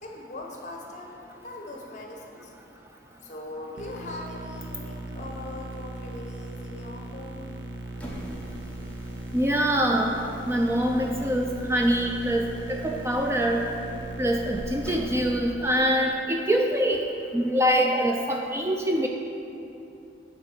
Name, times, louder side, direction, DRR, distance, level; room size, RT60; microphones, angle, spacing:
voice 1, 0.0-1.1 1.4-2.5 3.2-7.5, left 1 dB, 40° left, 0 dB, 1.0 m, -40 dB
sound 1, 3.8-15.3, right 2 dB, 70° right, 0.6 m, -38 dB
sound 2, 7.9-16.0, equal, 5° left, 0.9 m, -46 dB
voice 2, 9.3-10.2 10.4-12.4 12.7-13.6 14.2-17.0 17.3-19.1, equal, 15° right, 1 dB, 0.4 m, -24 dB
9.2 x 3.7 x 6.1 m, 2.8 s
head